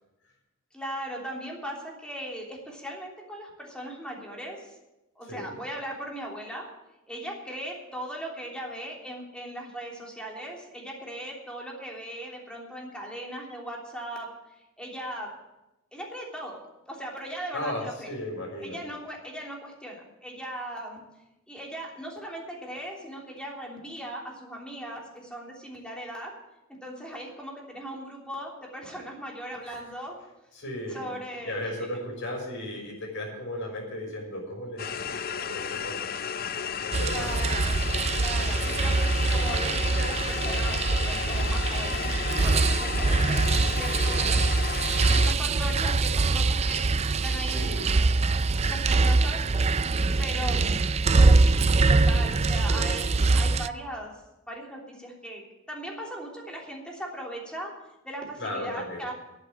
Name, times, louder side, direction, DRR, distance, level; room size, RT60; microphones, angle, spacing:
voice 1, 0.7-4.7 5.1-6.7 7.1-15.3 15.9-16.6 16.9-18.1 18.6-21.0 21.5-26.3 26.8-30.1 30.9-31.7 37.1-37.9 38.1-44.5 45.1-46.8 47.2-47.7 48.7-49.4 50.2-50.9 51.2-54.1 54.5-57.7 58.0-59.1, right 1 dB, 5° left, -2 dB, 3.3 m, -38 dB
voice 2, 17.5-18.8 29.7-29.8 30.5-31.1 31.4-35.1 35.4-36.0 36.7-37.3 39.2-39.4 47.5-47.9 58.4-59.0, left 1 dB, 65° left, -1 dB, 6.2 m, -35 dB
sound 1, 34.8-45.3, left 7 dB, 45° left, 0.5 m, -33 dB
sound 2, 36.9-53.7, right 3 dB, 30° right, 0.4 m, -23 dB
11.0 x 9.6 x 8.6 m, 0.96 s
head